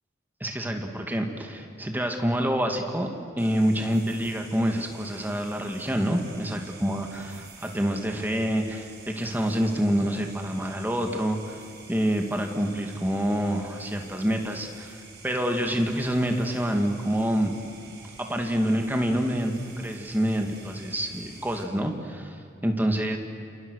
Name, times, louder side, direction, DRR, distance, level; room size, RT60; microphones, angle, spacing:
voice 1, 0.4-3.1 3.4-11.5 11.9-15.0 15.2-17.5 18.2-22.4 22.6-23.2, equal, 10° right, 3 dB, 2.3 m, -27 dB
sound 1, 3.4-21.6, right 4 dB, 55° right, 4.9 m, -48 dB
29.0 x 27.5 x 6.5 m, 2.6 s
head